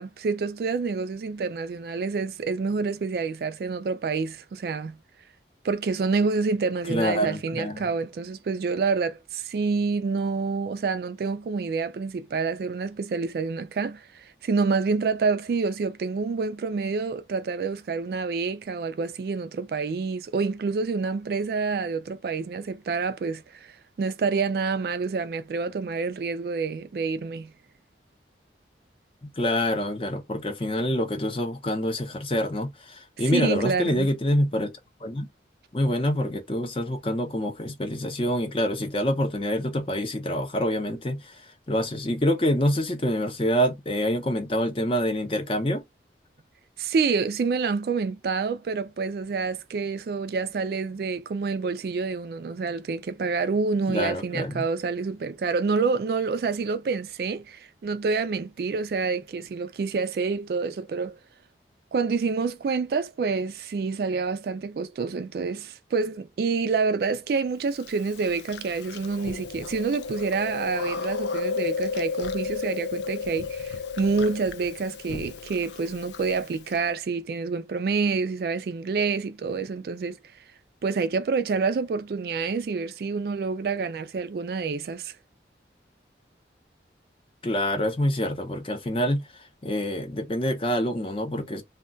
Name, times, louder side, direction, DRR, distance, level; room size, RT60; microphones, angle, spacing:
voice 1, 0.0-5.0 5.6-23.7 24.0-27.5 33.2-34.1 46.8-61.2 61.9-80.2 80.8-85.1, right 4 dB, 55° right, 0.3 m, -27 dB
voice 2, 6.9-7.8 29.2-34.7 35.0-35.3 35.7-41.4 41.7-45.8 53.9-54.6 87.4-89.2 89.6-91.6, equal, 30° left, 0.6 m, -26 dB
Chewing mastication, 67.8-76.8, left 5 dB, 75° left, 0.4 m, -33 dB
2.3 x 2.2 x 3.8 m
head